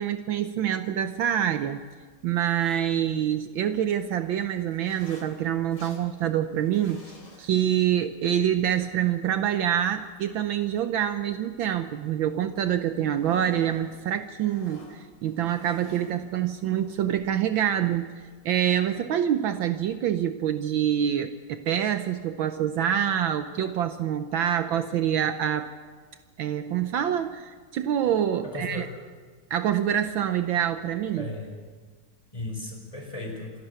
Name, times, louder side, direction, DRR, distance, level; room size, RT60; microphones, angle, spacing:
voice 1, 0.0-1.8 2.2-7.0 7.4-25.7 26.4-28.9 29.5-31.3, right 10 dB, 70° right, 9 dB, 1.5 m, -26 dB
Zipper (clothing), 1.0-18.9, left 1 dB, 55° left, 4.4 m, -52 dB
voice 2, 28.4-28.8 31.1-31.6 32.3-33.5, left 2 dB, 15° left, 1 dB, 5.0 m, -36 dB
27.5 x 12.5 x 8.2 m, 1.5 s
omnidirectional pair, 2.3 m